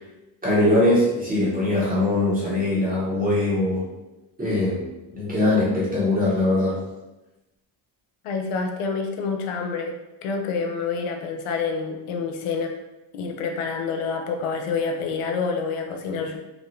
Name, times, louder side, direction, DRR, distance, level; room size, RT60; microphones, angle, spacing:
voice 1, 0.4-3.8 4.4-4.8 5.1-6.8, left 1 dB, 15° right, -7 dB, 0.9 m, -21 dB
voice 2, 8.2-10.0 10.2-12.8 13.1-16.4, left 5 dB, 85° left, 3 dB, 0.8 m, -27 dB
5.2 x 2.4 x 3.1 m, 1.0 s
cardioid pair, 155°, 49 cm